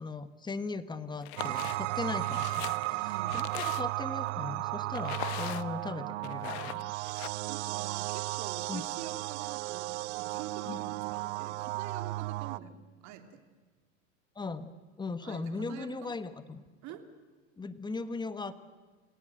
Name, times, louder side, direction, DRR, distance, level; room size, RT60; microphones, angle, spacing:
voice 1, 0.0-6.9 8.7-8.8 10.7-10.8 14.3-14.7 15.0-16.6 17.6-18.5, left 3 dB, 10° left, 12 dB, 1.4 m, -38 dB
sound 1, 1.2-1.8 2.2-4.1 5.0-5.9 6.2-7.3, left 17 dB, 60° left, 1.2 m, -40 dB
sound 2, 1.4-12.6, right 19 dB, 70° right, 0.8 m, -35 dB
voice 2, 3.1-3.5 7.5-12.7 13.0-13.4 15.2-15.4 15.7-16.2 16.8-17.0, right 10 dB, 50° right, 6 dB, 3.0 m, -46 dB
29.0 x 18.0 x 7.9 m, 1.4 s
supercardioid pair, 115°, 36 cm